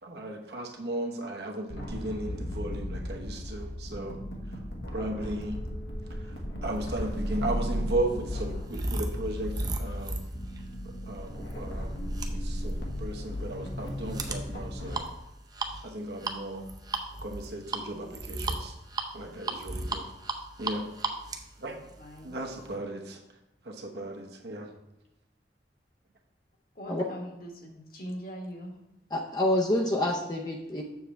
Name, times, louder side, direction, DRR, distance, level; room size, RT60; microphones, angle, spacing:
voice 1, 0.0-4.2 4.5-4.6 4.9-5.6 6.2-10.2 10.8-15.1 15.8-16.7 17.2-18.7 19.1-20.1 20.6-20.9 21.6-21.8 22.2-23.2 23.6-24.7, right 1 dB, 65° right, 2 dB, 1.1 m, -36 dB
sound 1, 1.7-15.0, equal, 85° left, 1.5 m, -35 dB
sound 2, 7.1-22.7, right 2 dB, 25° right, 0.6 m, -37 dB
voice 2, 22.0-22.3 26.7-28.7 30.8-30.9, equal, 55° left, 1 dB, 1.4 m, -41 dB
voice 3, 29.1-30.8, left 1 dB, 25° left, 0 dB, 0.6 m, -27 dB
7.2 x 6.9 x 3.4 m, 0.92 s
head